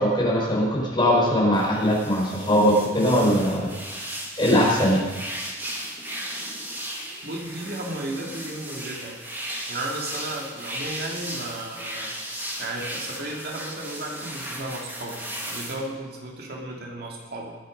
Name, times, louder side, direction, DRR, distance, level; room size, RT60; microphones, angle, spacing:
voice 1, 0.0-3.7 4.4-5.1, equal, 25° left, -4 dB, 5.0 m, -21 dB
sound 1, 1.5-15.7, right 1 dB, 10° right, 2.2 m, -36 dB
voice 2, 7.2-9.2 9.7-12.1 12.6-17.6, right 1 dB, 55° right, -1 dB, 2.4 m, -34 dB
21.0 x 8.8 x 5.2 m, 1.3 s
head